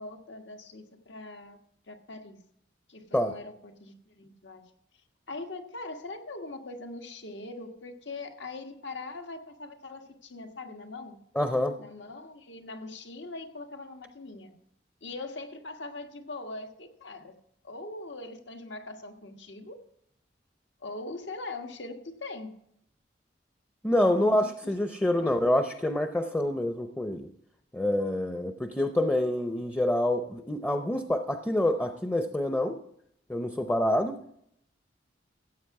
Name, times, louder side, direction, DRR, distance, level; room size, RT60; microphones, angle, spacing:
voice 1, 0.0-1.6 1.9-2.4 2.9-4.6 5.3-11.2 11.8-14.5 15.0-17.3 17.6-19.8 20.8-22.5 23.9-24.7 25.2-25.4, left 2 dB, 75° left, 5 dB, 1.5 m, -41 dB
voice 2, 11.4-11.8 23.8-27.3 27.7-32.8 33.3-34.2, left 1 dB, 10° left, 6 dB, 0.6 m, -27 dB
15.5 x 8.1 x 4.7 m, 0.72 s
head